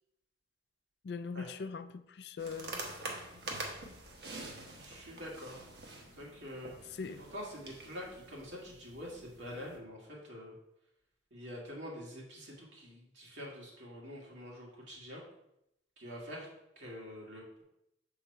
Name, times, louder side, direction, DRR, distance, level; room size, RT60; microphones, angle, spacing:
voice 1, 1.0-2.8 6.9-7.2, left 5 dB, 65° left, 11 dB, 0.4 m, -41 dB
sound 1, 2.4-9.8, right 2 dB, 60° right, 1.1 m, -46 dB
voice 2, 4.8-5.7 6.2-10.5 11.3-15.2 16.0-16.5 16.8-17.6, equal, 80° right, -4 dB, 2.2 m, -46 dB
6.4 x 3.9 x 4.5 m, 0.81 s
head